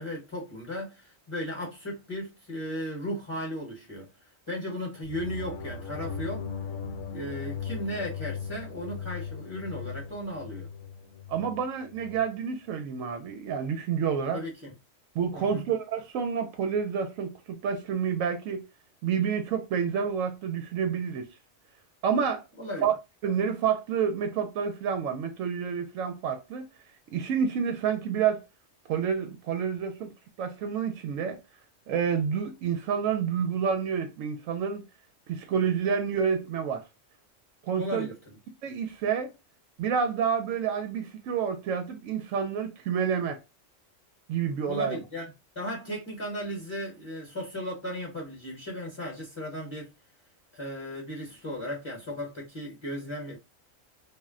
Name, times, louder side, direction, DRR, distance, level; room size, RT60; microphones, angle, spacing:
voice 1, 0.0-4.1 4.5-6.4 7.1-10.7 14.3-14.7 15.3-15.6 22.6-22.9 37.8-38.4 44.7-45.3 45.5-49.9 50.5-53.4, equal, 25° left, 0.9 m, -36 dB
sound 1, 5.0-12.3, left 5 dB, 75° left, 0.9 m, -38 dB
voice 2, 11.3-14.4 15.1-18.7 19.0-21.3 22.0-22.4 22.8-22.9 23.2-26.7 27.1-28.4 28.9-30.1 30.4-31.4 31.9-34.8 35.3-36.8 37.7-38.1 38.6-39.3 39.8-43.4 44.3-45.0, right 7 dB, 80° right, 0.9 m, -29 dB
2.5 x 2.1 x 3.5 m
omnidirectional pair, 1.3 m